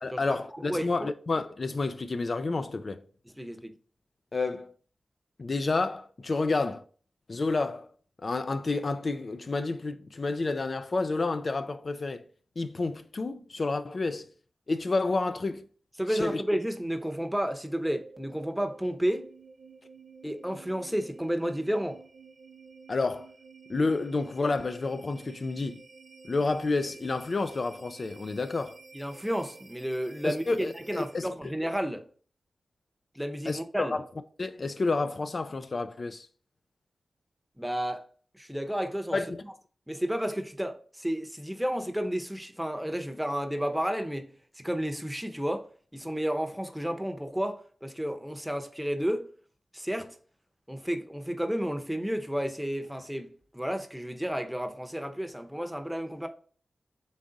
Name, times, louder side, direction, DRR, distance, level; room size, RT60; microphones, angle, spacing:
voice 1, 0.0-3.0 4.3-4.7 5.4-6.8 7.3-7.9 8.2-12.3 12.6-14.3 14.7-15.6 16.1-16.4 22.9-23.3 23.7-25.8 26.3-28.8 30.2-31.3 33.5-34.0 34.4-36.3 39.1-39.4, left 3 dB, 55° left, 0.3 m, -30 dB
voice 2, 0.7-1.1 3.3-3.7 16.0-19.3 20.2-22.0 28.9-32.0 33.1-33.9 37.6-38.0 38.3-39.2 39.4-39.5 39.9-44.3 44.6-49.3 49.7-50.2 50.7-56.3, equal, 5° right, 0.7 m, -32 dB
sound 1, 17.8-31.4, right 4 dB, 65° right, 0.7 m, -52 dB
3.9 x 3.5 x 3.8 m
cardioid pair, 45°, 0 cm